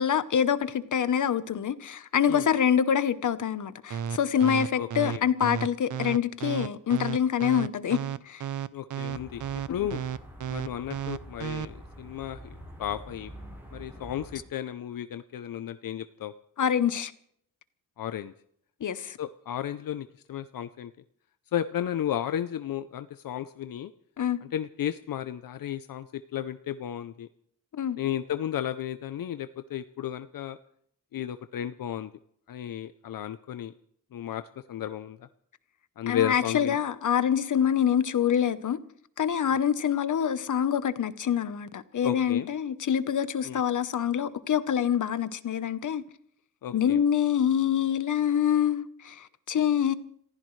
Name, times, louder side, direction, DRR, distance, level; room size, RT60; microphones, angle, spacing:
voice 1, 0.0-8.0 8.3-8.4 16.6-17.1 18.8-19.2 24.2-24.4 27.7-28.0 36.1-38.8 39.2-46.0 46.7-49.9, left 8 dB, 65° left, 1.0 m, -26 dB
sound 1, 3.9-11.7, right 8 dB, 65° right, 0.6 m, -32 dB
voice 2, 4.8-5.2 8.7-9.4 9.7-10.0 10.5-12.4 12.8-13.3 13.7-16.3 18.0-18.3 19.2-20.9 21.5-23.9 24.4-27.3 28.0-30.6 31.1-32.1 32.5-33.7 34.1-34.4 34.7-35.2 36.0-36.8 42.0-42.5 43.4-43.6 46.6-47.0, left 10 dB, 85° left, 0.6 m, -33 dB
sound 2, 9.1-14.4, equal, 5° right, 5.2 m, -46 dB
28.5 x 15.5 x 3.2 m
wide cardioid pair, 135°, 33 cm